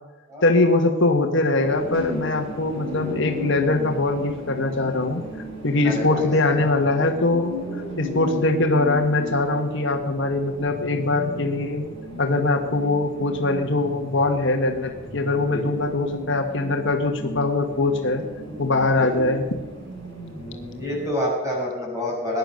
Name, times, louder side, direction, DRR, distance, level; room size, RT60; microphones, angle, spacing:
voice 1, 0.4-5.2 5.6-7.6 8.0-11.8 12.2-18.2 18.6-19.4, left 2 dB, 55° left, 4 dB, 1.5 m, -22 dB
sound 1, 1.5-21.1, left 1 dB, 60° right, 7.5 m, -35 dB
voice 2, 5.8-6.6 15.2-15.9 19.0-19.1 20.3-22.4, left 1 dB, 15° right, -4 dB, 7.3 m, -29 dB
20.5 x 11.0 x 6.4 m, 1.2 s
head